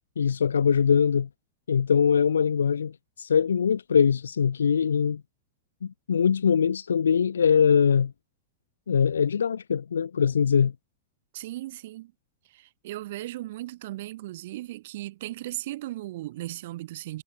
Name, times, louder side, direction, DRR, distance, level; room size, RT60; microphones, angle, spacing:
voice 1, 0.2-1.3 1.7-5.2 5.8-8.1 8.9-10.7, left 7 dB, 70° left, 0.5 m, -22 dB
voice 2, 11.3-12.1 12.5-17.2, right 16 dB, 55° right, 0.7 m, -37 dB
figure-of-eight pair, 90°, 0 cm